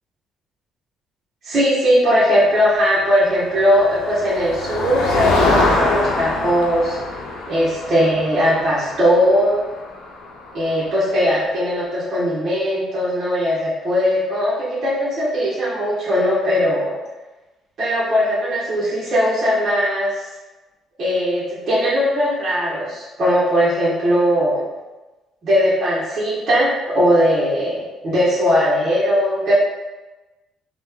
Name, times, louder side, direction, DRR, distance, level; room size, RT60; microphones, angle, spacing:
voice 1, 1.4-7.0 7.5-9.6 10.5-16.9 17.8-20.3 21.0-24.6 25.4-29.5, equal, 50° right, -9 dB, 1.4 m, -19 dB
Motor vehicle (road), 3.3-11.1, left 2 dB, 85° left, 0.7 m, -24 dB
4.0 x 2.6 x 3.6 m, 1.1 s
cardioid pair, 100°, 0 cm